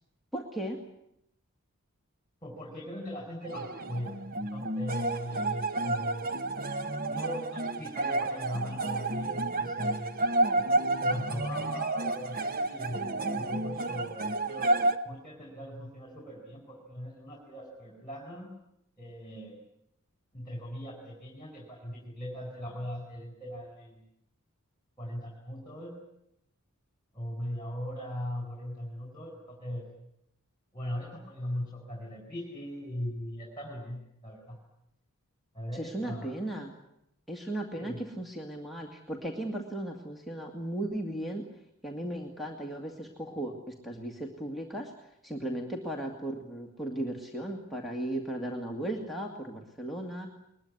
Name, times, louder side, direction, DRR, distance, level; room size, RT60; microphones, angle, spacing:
voice 1, 0.3-0.8 35.7-36.7 37.3-41.4 41.8-44.9 45.2-50.3, right 1 dB, ahead, 2 dB, 2.1 m, -36 dB
voice 2, 2.4-4.1 4.4-6.2 7.1-10.2 10.5-10.7 11.0-14.8 15.0-18.5 19.0-19.6 20.3-24.1 25.0-25.9 27.1-29.8 30.7-34.6 35.5-36.3 37.7-38.0, equal, 20° left, 0 dB, 4.7 m, -39 dB
sound 1, 3.4-15.0, right 2 dB, 40° right, 1.2 m, -30 dB
21.5 x 21.5 x 9.7 m, 0.79 s
head